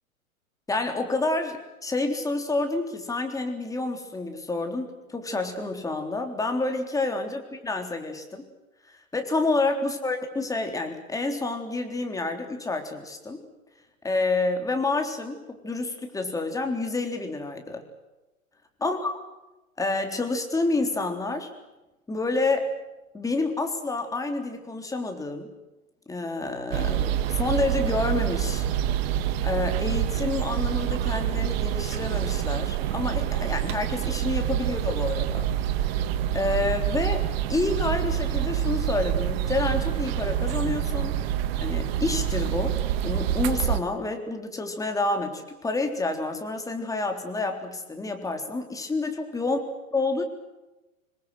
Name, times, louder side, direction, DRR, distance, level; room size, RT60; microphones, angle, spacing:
voice 1, 0.7-8.4 8.9-13.4 14.0-17.8 18.8-19.2 19.8-21.5 22.1-22.7 23.1-25.5 26.1-28.7 29.4-35.5 35.8-35.9 36.3-41.2 41.6-49.6 49.9-50.2, left 3 dB, 10° left, 5 dB, 3.6 m, -28 dB
sound 1, 26.7-43.8, right 10 dB, 45° right, 1.6 m, -27 dB
27.0 x 21.5 x 7.9 m, 1.0 s
hypercardioid pair, 115°, 43 cm